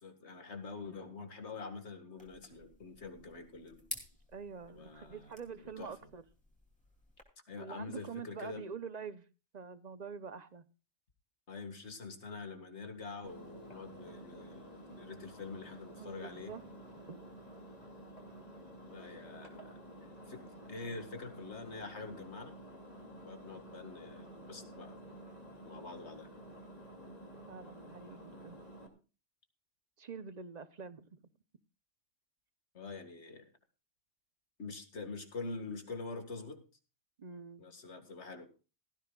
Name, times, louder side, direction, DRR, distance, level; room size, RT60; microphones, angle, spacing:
voice 1, 0.0-3.9 4.7-5.3 5.6-5.9 7.5-8.6 11.5-16.5 18.9-19.8 20.3-20.4 20.7-22.6 23.2-25.2 25.6-26.3 32.7-33.5 34.6-36.6 37.6-38.5, left 4 dB, 60° left, 7 dB, 2.2 m, -45 dB
sound 1, 2.2-7.2, equal, 5° left, 2.8 m, -51 dB
voice 2, 4.3-6.2 7.6-9.3 9.5-10.6 16.0-16.6 17.1-17.4 27.5-28.6 30.0-31.2 37.2-37.6, right 6 dB, 40° right, 13 dB, 0.8 m, -46 dB
Engine, 13.2-28.9, right 1 dB, 30° left, 2.6 m, -51 dB
17.5 x 14.0 x 2.4 m, 0.32 s
omnidirectional pair, 1.3 m